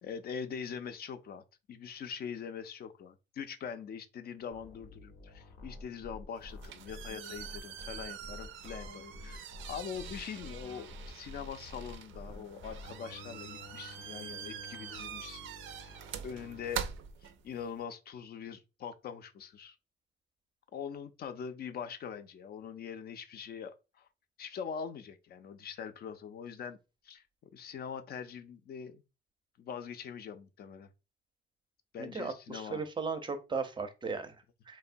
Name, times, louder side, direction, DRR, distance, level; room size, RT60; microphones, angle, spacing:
voice 1, 0.0-15.4 15.7-16.8 17.2-19.8 20.7-24.1 24.4-26.8 27.0-27.2 27.5-29.0 29.6-30.9 31.9-32.8, left 7 dB, 50° left, 0.4 m, -43 dB
sound 1, 4.5-16.9, left 2 dB, 85° left, 0.7 m, -50 dB
sound 2, 6.4-17.8, right 9 dB, 75° right, 0.4 m, -45 dB
voice 2, 32.0-34.8, right 4 dB, 25° right, 0.5 m, -37 dB
3.0 x 2.1 x 2.5 m
cardioid pair, 90°, 20 cm